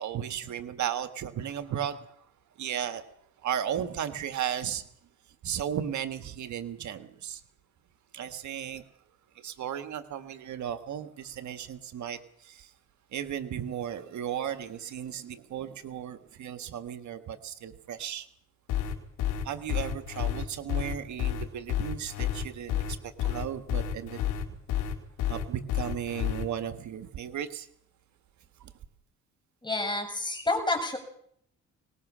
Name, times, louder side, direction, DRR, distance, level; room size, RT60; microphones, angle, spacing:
voice 1, 0.0-2.1 2.6-3.0 3.4-4.8 5.4-7.4 8.1-8.8 9.4-12.7 13.1-18.3 19.4-24.2 25.3-27.7 28.6-28.7, right 9 dB, 70° right, 9 dB, 1.7 m, -35 dB
sound 1, 18.7-26.4, left 10 dB, 80° left, 4.5 m, -30 dB
voice 2, 29.6-31.0, left 2 dB, 15° left, 4 dB, 7.4 m, -29 dB
23.5 x 20.0 x 6.3 m, 0.66 s
cardioid pair, 90°, 30 cm